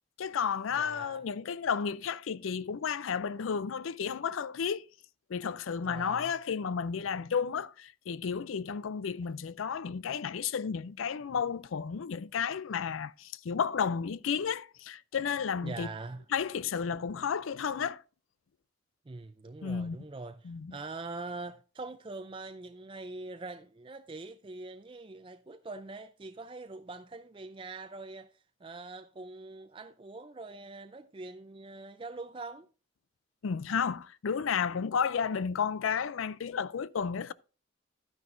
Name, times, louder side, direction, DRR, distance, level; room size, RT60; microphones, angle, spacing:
voice 1, 0.2-4.9 5.3-15.9 16.3-18.0 19.6-20.0 20.4-20.8 33.4-37.3, left 6 dB, 85° left, 0.4 m, -32 dB
voice 2, 0.7-1.2 5.8-6.3 15.6-16.2 19.1-32.7, right 3 dB, 25° right, 0.4 m, -43 dB
12.0 x 9.5 x 2.6 m
head